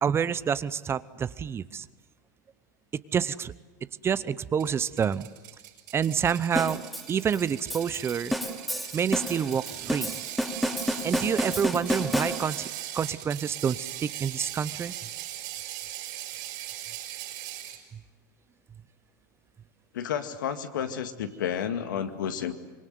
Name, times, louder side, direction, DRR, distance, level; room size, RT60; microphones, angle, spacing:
voice 1, 0.0-1.9 3.1-3.5 4.0-5.3 5.9-6.8 7.1-8.3 8.9-10.2 11.0-12.7 12.9-14.9, right 7 dB, 25° right, 17 dB, 0.8 m, -28 dB
Ratchet pawl, 4.6-17.8, right 13 dB, 65° right, 6.8 m, -39 dB
sound 1, 6.6-12.8, equal, ahead, 2.9 m, -31 dB
voice 2, 19.9-22.5, left 8 dB, 80° left, 8 dB, 2.1 m, -31 dB
25.5 x 22.0 x 9.4 m, 1.2 s
hypercardioid pair, 105°, 10 cm